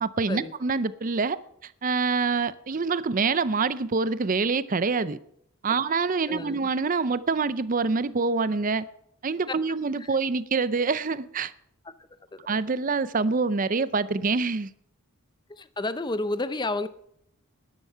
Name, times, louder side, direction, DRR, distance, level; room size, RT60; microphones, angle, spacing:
voice 1, 0.0-5.2 5.6-8.9 9.2-11.5 12.5-14.7, right 4 dB, 35° right, 16 dB, 0.5 m, -26 dB
voice 2, 6.3-6.6 10.0-10.1 12.3-12.4 15.5-16.9, left 2 dB, 20° left, 13 dB, 0.5 m, -30 dB
13.0 x 10.5 x 5.6 m, 0.71 s
head